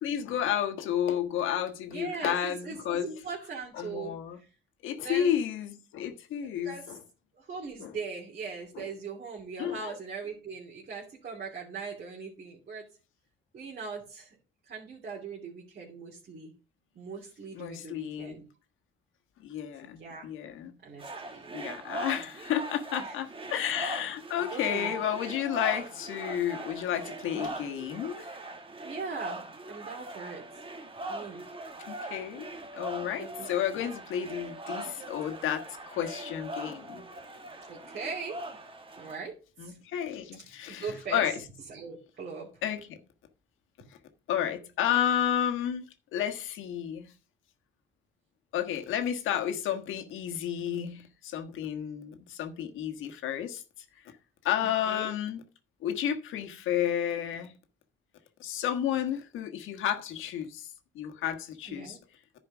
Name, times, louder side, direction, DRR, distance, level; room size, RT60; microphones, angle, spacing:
voice 1, 0.0-3.1 3.7-4.4 4.8-7.0 7.8-8.0 8.7-8.9 9.6-10.0 17.5-18.4 19.4-20.8 21.5-28.4 31.9-32.5 32.7-37.0 39.6-41.4 42.6-43.0 44.3-45.8 46.1-47.1 48.5-53.6 54.4-55.4 55.8-57.6 58.4-60.7 60.9-62.0, left 10 dB, 90° left, 1.5 m, -31 dB
voice 2, 1.9-4.5 5.0-5.4 6.6-7.0 7.4-12.8 13.5-14.4 14.7-16.5 16.9-18.4 19.8-20.3 20.8-21.4 23.0-23.2 24.4-25.0 27.3-27.5 28.8-29.4 29.7-30.4 31.1-31.4 33.2-33.8 37.7-38.4 39.0-39.8 40.7-41.2 41.7-42.5 54.6-55.1 61.7-62.0, right 5 dB, 50° right, 2.8 m, -40 dB
sound 1, 21.0-39.2, right 2 dB, 25° right, 1.5 m, -41 dB
10.5 x 4.9 x 6.0 m
cardioid pair, 90°, 20 cm